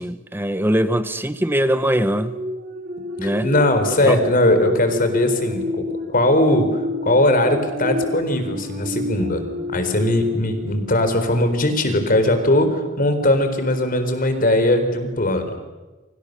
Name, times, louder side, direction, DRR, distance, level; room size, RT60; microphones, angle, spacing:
voice 1, 0.0-2.4 3.2-3.5 4.0-4.2, equal, 10° right, 1.1 m, -21 dB
sound 1, 2.0-11.8 12.3-12.5, left 2 dB, 50° right, 3.4 m, -30 dB
voice 2, 3.2-9.4 9.7-15.5, left 1 dB, 45° left, 4.3 m, -19 dB
30.0 x 25.5 x 6.8 m
head